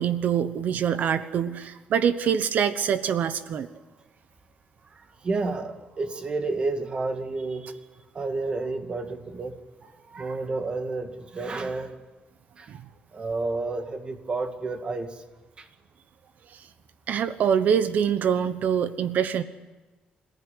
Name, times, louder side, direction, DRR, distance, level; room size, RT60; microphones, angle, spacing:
voice 1, 0.0-3.7 12.7-12.8 16.5-16.6 17.1-19.4, right 8 dB, 65° right, 12 dB, 1.0 m, -24 dB
voice 2, 4.9-7.8 8.1-9.6 9.8-12.0 12.6-12.7 13.1-15.2 15.6-15.7, right 3 dB, 35° right, 6 dB, 2.3 m, -31 dB
26.5 x 15.0 x 10.0 m, 1.2 s
cardioid pair, 140°, 3 cm